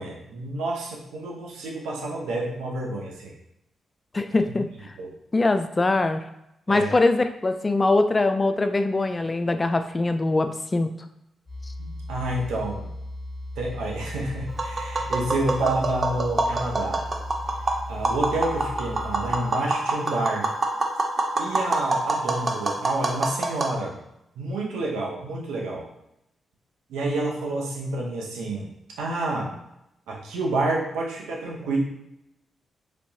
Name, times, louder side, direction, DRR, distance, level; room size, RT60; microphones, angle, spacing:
voice 1, 0.0-3.3 5.0-5.1 6.7-6.9 11.8-12.9 13.6-17.0 17.9-20.5 21.4-23.9 24.4-25.9 26.9-28.7 29.0-29.5 30.1-31.8, right 2 dB, 85° right, -2 dB, 0.8 m, -29 dB
voice 2, 4.1-4.9 5.3-6.2 6.7-10.9, left 2 dB, 30° left, 9 dB, 0.3 m, -22 dB
sound 1, 11.5-19.4, left 1 dB, 10° left, 1.5 m, -37 dB
Tap, 14.5-23.7, right 2 dB, 45° right, 0.6 m, -26 dB
3.3 x 3.0 x 2.7 m, 0.83 s
supercardioid pair, 50°, 0 cm